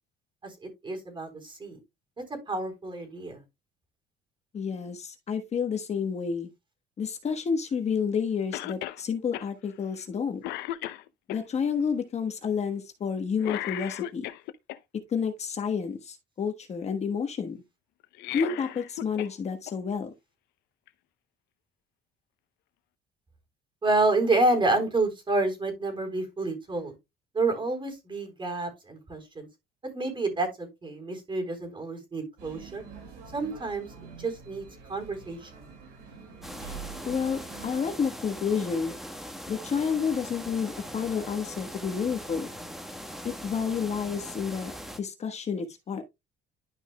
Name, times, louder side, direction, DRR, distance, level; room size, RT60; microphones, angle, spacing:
voice 1, 0.4-1.8 2.5-3.4 23.8-26.9 27.3-29.5 29.8-32.8 33.3-33.9 34.2-35.7, right 2 dB, 30° right, 3.9 m, -29 dB
voice 2, 4.5-6.5 7.0-10.4 11.3-14.3 15.1-17.6 18.3-20.1 37.0-38.9 39.5-42.5 43.2-44.7 45.0-46.0, left 6 dB, 40° left, 1.3 m, -30 dB
Cough, 8.5-9.0 9.3-9.5 10.0-10.1 10.4-11.4 13.4-14.8 18.0-19.3 19.7-19.8 20.9-21.0, left 14 dB, 85° left, 0.7 m, -36 dB
sound 1, 32.4-37.7, right 6 dB, 80° right, 5.3 m, -46 dB
sound 2, 36.4-45.0, equal, ahead, 1.3 m, -41 dB
11.5 x 5.3 x 2.2 m
cardioid pair, 110°, 17 cm